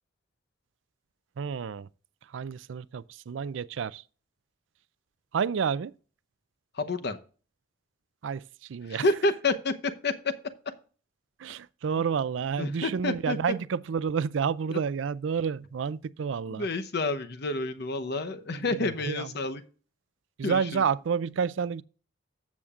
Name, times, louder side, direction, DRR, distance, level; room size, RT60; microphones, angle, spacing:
voice 1, 1.4-1.9 2.3-4.0 5.3-5.9 8.2-8.4 8.7-9.0 11.4-16.7 19.1-19.3 20.4-21.8, right 6 dB, 70° right, 0.4 m, -29 dB
voice 2, 6.7-7.2 8.9-10.3 12.0-12.1 12.6-13.4 14.7-14.8 16.6-19.6 20.4-20.8, left 2 dB, 60° left, 0.9 m, -29 dB
13.5 x 7.3 x 2.4 m
head